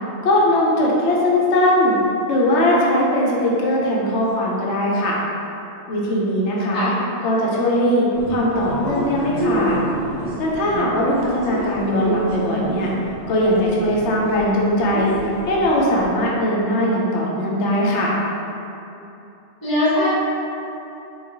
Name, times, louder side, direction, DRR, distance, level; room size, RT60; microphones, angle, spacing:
voice 1, 0.2-2.0 2.3-5.2 5.9-6.9 7.2-9.8 10.4-12.9 13.3-15.2 15.4-18.1, left 1 dB, 80° left, -4 dB, 0.9 m, -19 dB
sound 1, 8.1-16.1, equal, 40° right, 0.7 m, -29 dB
voice 2, 19.6-20.1, left 1 dB, 20° left, -10 dB, 0.7 m, -21 dB
3.8 x 2.2 x 2.7 m, 2.9 s
omnidirectional pair, 1.2 m